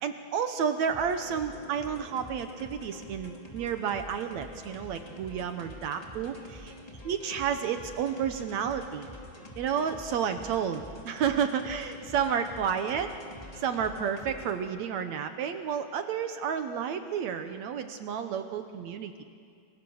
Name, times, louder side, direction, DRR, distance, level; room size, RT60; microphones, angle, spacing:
voice 1, 0.0-6.7 7.1-9.1 9.6-13.1 13.6-19.2, right 7 dB, 70° right, 8 dB, 1.8 m, -31 dB
sound 1, 0.9-14.6, left 1 dB, 15° left, 1.8 m, -47 dB
28.0 x 23.0 x 6.4 m, 2.2 s
omnidirectional pair, 4.1 m